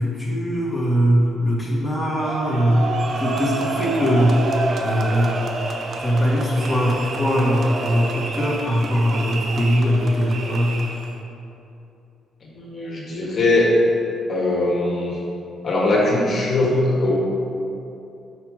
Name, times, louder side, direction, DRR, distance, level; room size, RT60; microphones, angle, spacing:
voice 1, 0.0-5.3 6.0-10.8, equal, ahead, -6 dB, 1.5 m, -21 dB
sound 1, 2.2-11.2, right 3 dB, 50° right, 0.7 m, -29 dB
sound 2, 2.6-8.7, right 2 dB, 35° right, 1.1 m, -32 dB
voice 2, 12.5-13.7 14.3-15.2 15.6-17.1, left 2 dB, 50° left, -4 dB, 1.2 m, -20 dB
5.7 x 4.6 x 4.8 m, 2.8 s
cardioid pair, 90°, 0 cm